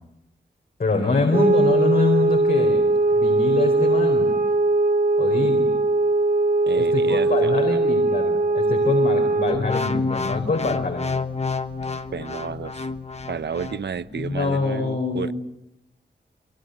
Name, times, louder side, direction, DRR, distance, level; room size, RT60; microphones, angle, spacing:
voice 1, 0.8-2.8 3.1-4.3 5.2-5.7 6.7-11.1 14.1-15.3, left 3 dB, 55° left, 4.3 m, -25 dB
sound 1, 1.3-9.7, right 2 dB, 50° right, 1.7 m, -20 dB
voice 2, 6.7-7.8 12.1-12.9 13.3-15.3, right 6 dB, 75° right, 0.9 m, -32 dB
sound 2, 9.5-13.8 14.3-14.6, left 4 dB, 35° left, 1.3 m, -28 dB
29.0 x 22.0 x 8.0 m
wide cardioid pair, 115°, 18 cm